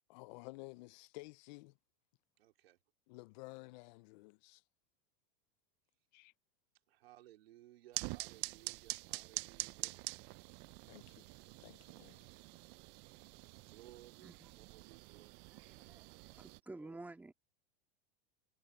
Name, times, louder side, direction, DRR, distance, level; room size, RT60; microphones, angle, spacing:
voice 1, 0.1-1.8 3.1-4.6 6.1-6.3 10.9-11.3 11.6-12.2, left 24 dB, 50° left, 0.4 m, -53 dB
voice 2, 2.4-2.8 6.9-9.9 13.7-15.3 16.8-17.1, right 15 dB, 85° right, 3.8 m, -61 dB
sound 1, 7.9-16.6, right 24 dB, 40° right, 0.4 m, -46 dB
voice 3, 14.2-14.5 15.5-17.3, right 2 dB, 5° right, 1.9 m, -52 dB
supercardioid pair, 145°, 29 cm